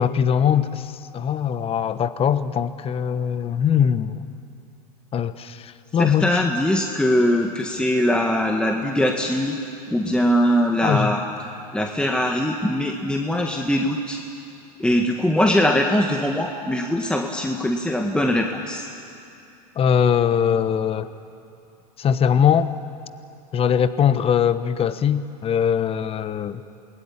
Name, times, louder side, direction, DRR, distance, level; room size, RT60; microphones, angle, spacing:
voice 1, 0.0-4.2 5.1-6.4 10.8-11.1 19.7-21.1 22.0-22.7 23.5-26.6, left 8 dB, 25° left, 13 dB, 1.2 m, -21 dB
voice 2, 6.0-9.6 9.9-11.2 11.7-14.2 14.8-18.9, left 1 dB, 5° left, 2 dB, 1.7 m, -21 dB
27.5 x 21.0 x 10.0 m, 2.6 s
hypercardioid pair, 100°, 21 cm